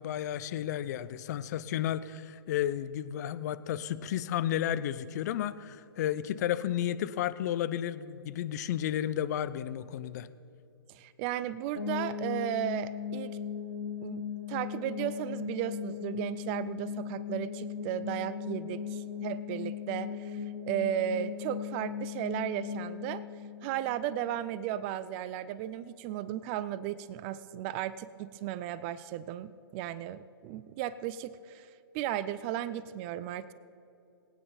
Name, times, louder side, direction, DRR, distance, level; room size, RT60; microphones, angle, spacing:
voice 1, 0.0-10.3, left 11 dB, 45° left, 15 dB, 0.5 m, -32 dB
voice 2, 10.9-13.4 14.0-23.2 23.6-31.7 31.9-33.5, right 11 dB, 25° right, 16 dB, 0.4 m, -35 dB
sound 1, 11.8-24.6, left 8 dB, 70° left, 2.7 m, -38 dB
21.5 x 9.2 x 3.9 m, 2.8 s
figure-of-eight pair, 125°, 13 cm